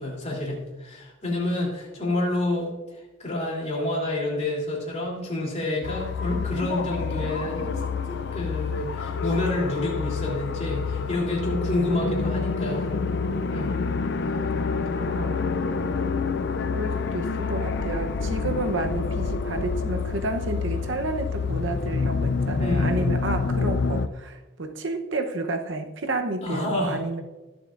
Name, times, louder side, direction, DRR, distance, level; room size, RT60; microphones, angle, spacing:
voice 1, 0.0-7.8 8.1-13.0 13.5-13.8 22.6-23.2 26.4-27.0, left 1 dB, 30° left, -3 dB, 3.1 m, -29 dB
sound 1, 5.8-24.1, left 4 dB, 55° left, 0.5 m, -27 dB
voice 2, 15.1-15.5 16.7-27.2, right 2 dB, 60° right, 6 dB, 0.9 m, -30 dB
21.0 x 7.4 x 2.5 m, 1.2 s
head